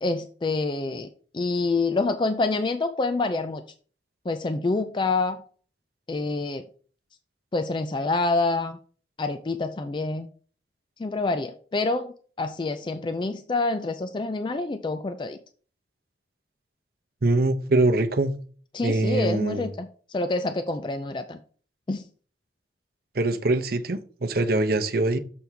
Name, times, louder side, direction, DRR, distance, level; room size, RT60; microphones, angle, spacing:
voice 1, 0.0-1.1 1.3-3.6 4.3-5.4 6.1-6.6 7.5-8.8 9.2-10.3 11.0-15.4 18.7-21.4 21.9-22.0, left 3 dB, 25° left, 0.4 m, -27 dB
voice 2, 17.2-18.3 18.8-19.7 23.1-25.2, right 2 dB, 50° right, 0.7 m, -23 dB
6.9 x 3.4 x 6.0 m
head